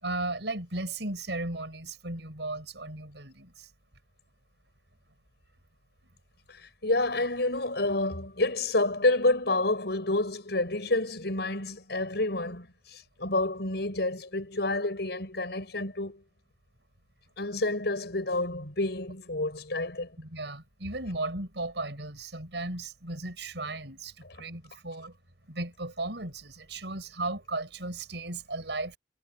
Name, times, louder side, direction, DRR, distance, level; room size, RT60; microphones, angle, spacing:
voice 1, 0.0-3.7 20.2-25.1 25.5-29.0, right 2 dB, 80° right, 5.6 m, -36 dB
voice 2, 6.5-16.2 17.4-20.1 24.4-24.5, left 2 dB, 70° left, 7.8 m, -29 dB
head